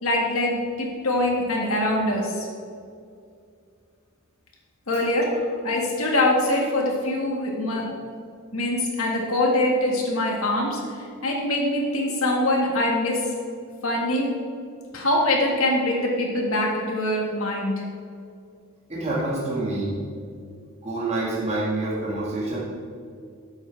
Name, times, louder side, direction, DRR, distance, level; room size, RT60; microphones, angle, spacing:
voice 1, 0.0-2.5 4.9-7.9 8.5-13.3 13.8-14.3 14.9-17.8, left 1 dB, 70° left, -1 dB, 2.1 m, -23 dB
voice 2, 18.9-20.0 20.8-22.6, right 2 dB, 30° right, -7 dB, 2.2 m, -27 dB
12.5 x 7.9 x 3.6 m, 2.3 s
head